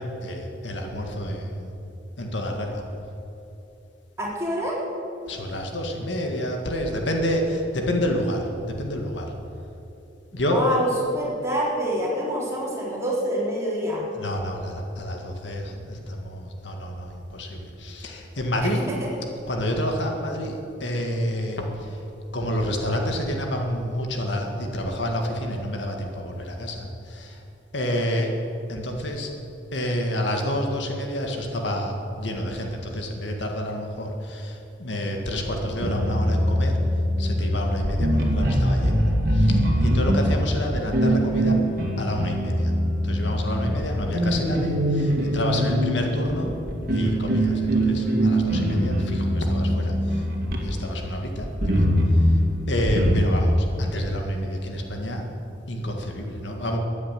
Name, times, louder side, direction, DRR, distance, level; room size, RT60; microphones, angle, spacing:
voice 1, 0.0-1.7 2.2-2.8 5.3-9.3 10.3-10.8 14.2-18.8 19.5-22.0 22.3-27.4 27.7-28.3 28.7-29.3 29.7-36.8 37.2-41.6 42.0-42.7 43.0-46.6 46.9-50.2 50.6-51.9 52.7-55.3 55.7-56.8, equal, 75° left, 2 dB, 1.9 m, -28 dB
voice 2, 4.2-4.8 10.4-14.0 18.6-19.1, equal, 15° right, -6 dB, 3.9 m, -26 dB
sound 1, 35.5-50.9 51.4-53.3, equal, 50° right, 2.3 m, -23 dB
14.0 x 9.5 x 9.1 m, 2.9 s
head